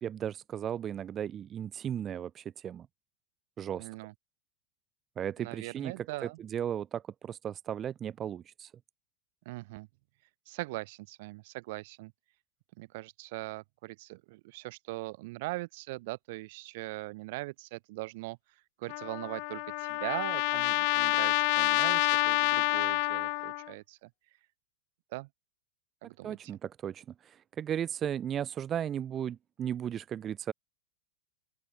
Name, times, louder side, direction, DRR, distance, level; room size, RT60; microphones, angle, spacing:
voice 1, 0.0-2.9 3.6-3.9 5.2-8.7 26.2-30.5, right 9 dB, 25° right, 1.5 m, -36 dB
voice 2, 3.8-4.1 5.4-6.4 9.4-9.9 10.5-12.1 12.8-18.4 18.8-24.1 25.1-25.3 26.0-26.4, right 22 dB, 50° right, 5.1 m, -40 dB
Trumpet, 18.9-23.7, left 39 dB, 45° left, 1.7 m, -28 dB
open air
figure-of-eight pair, 90°, 0 cm